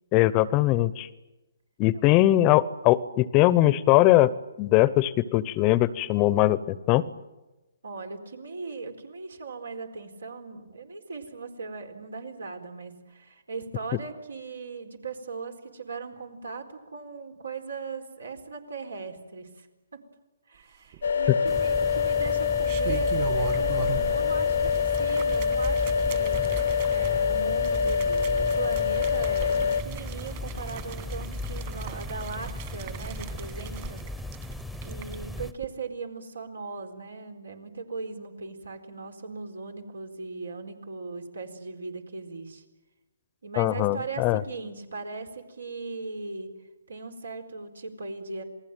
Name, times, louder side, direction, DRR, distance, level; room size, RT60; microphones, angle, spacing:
voice 1, 0.1-1.1 1.8-4.3 4.6-7.0 21.3-21.4 43.6-44.4, left 16 dB, 25° left, 18 dB, 0.8 m, -21 dB
voice 2, 7.8-19.7 19.9-20.0 20.5-34.3 34.8-42.6 43.4-46.5 46.9-48.4, right 4 dB, 85° right, 6 dB, 4.3 m, -38 dB
sound 1, 20.9-21.6 22.4-24.2 24.5-35.2 35.5-35.7, right 11 dB, 40° right, 2.4 m, -41 dB
sound 2, 21.0-29.8, left 6 dB, 70° left, 0.9 m, -25 dB
sound 3, 21.5-35.5, left 1 dB, ahead, 1.0 m, -36 dB
28.0 x 19.5 x 9.1 m, 1.1 s
hypercardioid pair, 145°, 0 cm